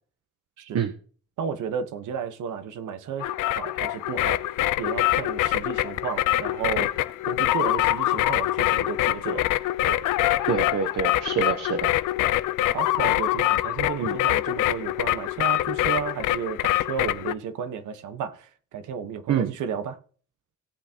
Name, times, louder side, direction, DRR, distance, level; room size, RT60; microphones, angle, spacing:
voice 1, 1.4-9.5 9.8-10.0 12.7-20.0, right 7 dB, 80° right, 1.3 m, -33 dB
sound 1, 3.2-17.3, left 15 dB, 85° left, 0.6 m, -24 dB
voice 2, 10.5-11.9 14.0-14.2 19.3-19.5, right 7 dB, 60° right, 1.1 m, -26 dB
17.5 x 8.0 x 3.0 m
cardioid pair, 90°, 30 cm